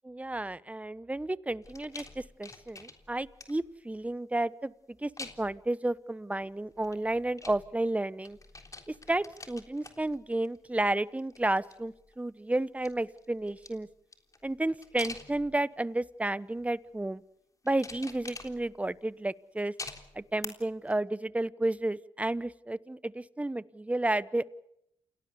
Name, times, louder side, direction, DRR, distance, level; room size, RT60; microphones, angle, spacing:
voice 1, 0.0-4.7 5.0-8.4 8.9-13.9 14.4-17.2 17.6-19.7 20.1-24.5, right 2 dB, 10° right, 18 dB, 1.0 m, -32 dB
sound 1, 1.6-3.8 5.2-5.7 6.7-8.0 8.2-10.7 11.1-12.2 12.6-15.8 16.5-16.9 17.6-19.0 19.8-20.5 20.9-21.0, left 3 dB, 30° left, 3.6 m, -47 dB
28.5 x 18.0 x 7.0 m, 0.79 s
supercardioid pair, 50°, 11 cm